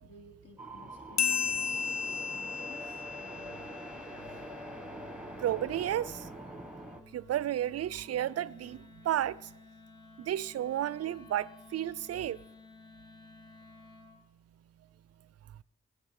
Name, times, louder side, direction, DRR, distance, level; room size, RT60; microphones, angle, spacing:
voice 1, 0.0-4.1, left 3 dB, 40° left, 3.1 m, -56 dB
sound 1, 0.6-7.0, equal, 5° right, 1.7 m, -45 dB
sound 2, 1.2-4.2, left 6 dB, 65° left, 0.8 m, -33 dB
Wind instrument woodwind instrument, 2.7-14.2, left 4 dB, 85° left, 2.1 m, -56 dB
voice 2, 5.4-6.3 7.1-9.5 10.2-12.4, right 11 dB, 55° right, 0.5 m, -32 dB
16.5 x 10.5 x 5.3 m
supercardioid pair, 45°, 29 cm